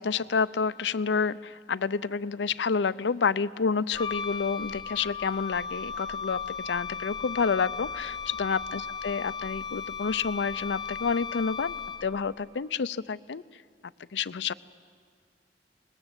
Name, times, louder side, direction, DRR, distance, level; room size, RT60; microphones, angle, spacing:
voice 1, 0.0-13.4 14.1-14.5, left 5 dB, 90° left, 17 dB, 0.5 m, -29 dB
Wind instrument woodwind instrument, 3.9-12.3, left 6 dB, 25° left, 0.7 m, -36 dB
27.5 x 20.5 x 8.2 m, 2.1 s
head